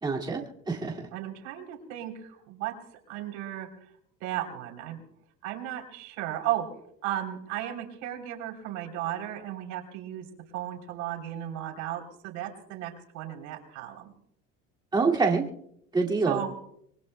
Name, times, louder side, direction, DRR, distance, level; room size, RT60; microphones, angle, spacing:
voice 1, 0.0-1.1 14.9-15.4 15.9-16.4, right 4 dB, 15° right, -2 dB, 2.2 m, -26 dB
voice 2, 1.1-2.8 3.1-3.9 4.2-5.0 5.4-6.7 7.0-10.3 10.5-14.1 16.2-16.5, right 12 dB, 75° right, 4 dB, 3.4 m, -35 dB
25.5 x 22.5 x 2.2 m, 0.72 s
cardioid pair, 120°, 29 cm